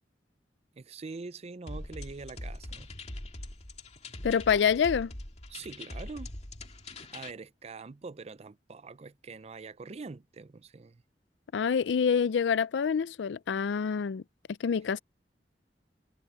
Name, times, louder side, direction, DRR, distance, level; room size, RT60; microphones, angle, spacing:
voice 1, 0.7-2.9 5.5-6.3 6.9-11.0, right 4 dB, 35° right, 0.5 m, -44 dB
sound 1, 1.7-7.3, left 1 dB, 40° left, 2.2 m, -42 dB
voice 2, 4.2-5.1 11.5-14.2 14.6-15.0, left 6 dB, 85° left, 0.4 m, -26 dB
head